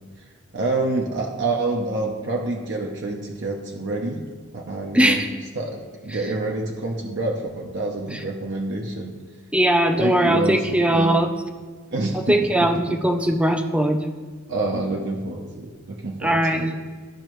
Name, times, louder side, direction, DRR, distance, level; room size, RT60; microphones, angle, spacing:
voice 1, 0.5-4.2 4.5-5.2 5.5-9.1 10.0-11.2 11.9-13.0 14.5-16.7, right 2 dB, 55° right, 0 dB, 0.7 m, -27 dB
voice 2, 4.9-5.3 8.1-8.2 9.5-11.3 12.1-14.1 16.2-16.7, right 1 dB, 5° right, 4 dB, 0.4 m, -20 dB
12.5 x 5.5 x 3.1 m, 1.4 s
head